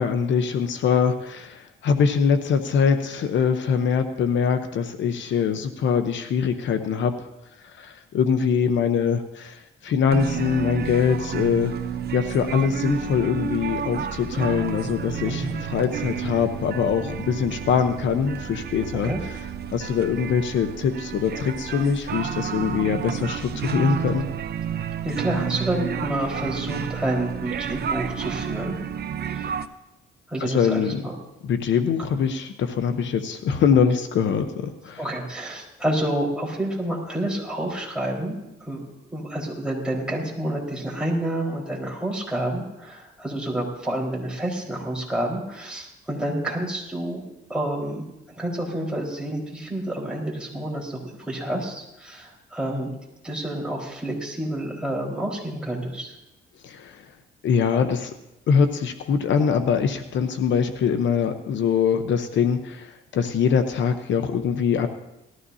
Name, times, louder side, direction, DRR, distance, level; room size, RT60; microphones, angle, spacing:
voice 1, 0.0-7.1 7.8-11.7 12.1-19.1 19.7-24.3 30.4-31.0 31.5-35.0 56.6-57.0 57.4-58.1 58.5-64.9, left 6 dB, 70° left, 8 dB, 0.9 m, -23 dB
sound 1, 10.1-29.7, right 8 dB, 55° right, 0.7 m, -31 dB
voice 2, 15.2-15.6 19.0-19.2 25.0-28.7 29.3-29.5 30.3-31.1 35.0-38.8 39.1-47.2 47.5-52.9 53.2-56.2, right 1 dB, 5° right, -3 dB, 4.6 m, -29 dB
18.5 x 14.0 x 2.8 m, 0.92 s
cardioid pair, 90°, 20 cm